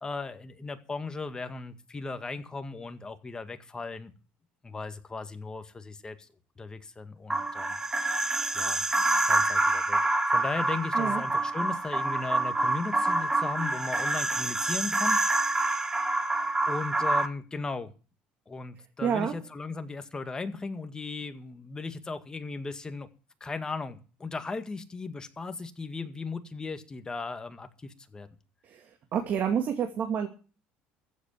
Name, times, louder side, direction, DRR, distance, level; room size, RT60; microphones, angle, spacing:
voice 1, 0.0-4.1 4.6-6.3 6.6-7.8 8.2-8.9 9.3-10.0 10.3-15.2 16.3-17.9 18.5-23.1 23.4-28.3, left 3 dB, 20° left, 2.0 m, -37 dB
sound 1, 7.3-17.3, right 2 dB, 15° right, 1.4 m, -27 dB
voice 2, 19.0-19.4 28.7-28.8 29.1-30.3, right 8 dB, 50° right, 2.5 m, -28 dB
15.0 x 8.3 x 7.5 m
supercardioid pair, 110°, 4 cm